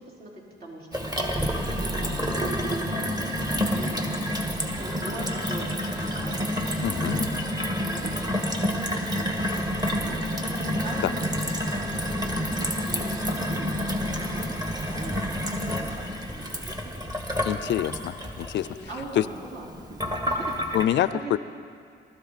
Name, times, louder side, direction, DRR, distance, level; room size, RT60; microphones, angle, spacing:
voice 1, 0.0-3.0 3.7-6.8 7.5-15.1 15.4-16.8 17.8-18.1 18.6-19.7 20.3-21.4, right 2 dB, 50° right, -5 dB, 4.3 m, -42 dB
Gurgling / Water tap faucet / Sink (filling or washing), 0.9-20.8, equal, 20° right, 1.7 m, -29 dB
voice 2, 6.8-7.3 17.4-18.7 19.2-19.3 20.7-21.4, left 12 dB, 65° left, 16 dB, 0.4 m, -26 dB
19.5 x 13.0 x 4.1 m, 2.3 s
cardioid pair, 90°, 20 cm